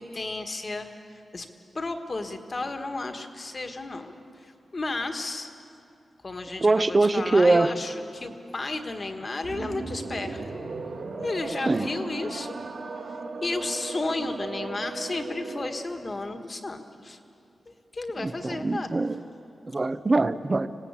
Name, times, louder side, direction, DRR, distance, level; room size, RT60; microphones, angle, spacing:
voice 1, 0.0-1.5 1.7-5.5 6.2-10.6 11.2-12.5 13.4-17.2 17.9-18.9, left 2 dB, 30° left, 6 dB, 1.6 m, -33 dB
voice 2, 6.6-7.7 11.7-11.9 18.2-19.2 19.7-20.7, right 2 dB, 25° right, 13 dB, 0.7 m, -22 dB
sound 1, 9.4-15.9, right 3 dB, 80° right, 3.6 m, -36 dB
25.5 x 18.5 x 8.3 m, 2.6 s
wide cardioid pair, 145°, 0 cm